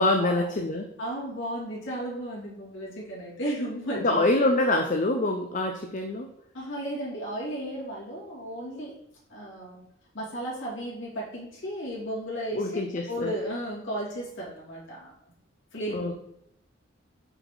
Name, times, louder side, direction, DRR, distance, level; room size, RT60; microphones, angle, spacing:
voice 1, 0.0-0.9 3.9-6.3 12.5-13.3 15.9-16.1, left 2 dB, 40° left, 4 dB, 0.5 m, -25 dB
voice 2, 1.0-4.3 6.5-8.9 9.3-9.8 10.1-12.8 13.1-15.1 15.7-16.1, right 1 dB, 65° left, -6 dB, 2.7 m, -34 dB
6.2 x 4.2 x 4.9 m, 0.74 s
head